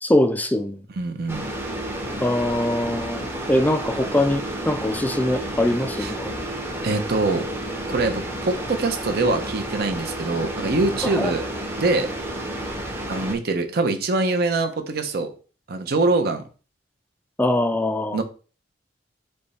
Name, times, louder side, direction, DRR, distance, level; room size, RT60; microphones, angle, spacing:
voice 1, 0.0-0.8 2.2-6.5 11.0-11.3 17.4-18.2, left 1 dB, 10° left, 0.3 m, -22 dB
voice 2, 1.0-1.5 6.0-6.1 6.8-7.4 7.9-11.5 11.8-12.1 13.1-15.3 15.7-16.4 18.1-18.2, right 3 dB, 55° right, 0.7 m, -23 dB
sound 1, 1.3-13.4, right 1 dB, 10° right, 0.7 m, -31 dB
3.4 x 3.2 x 4.1 m
head